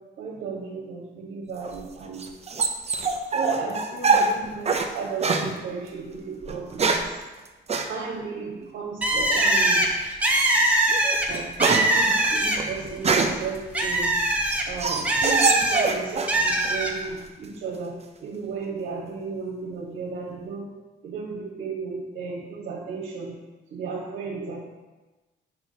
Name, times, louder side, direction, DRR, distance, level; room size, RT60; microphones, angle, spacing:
voice 1, 0.2-2.2 3.3-7.2 7.9-9.8 11.3-11.5 11.8-14.2 14.7-20.7 21.0-23.3 23.7-24.6, right 4 dB, 85° right, -2 dB, 1.3 m, -34 dB
sound 1, 1.6-4.9 5.2-5.5 6.4-7.2 7.7-7.9 9.4-9.8 10.3-10.5 10.9-13.5 14.0-16.4 16.6-17.3, right 4 dB, 30° right, 0.6 m, -24 dB
Bird, 9.0-12.8 13.2-15.8 16.3-16.9, right 1 dB, 5° right, 1.0 m, -22 dB
7.4 x 5.8 x 2.8 m, 1.2 s
cardioid pair, 90°, 20 cm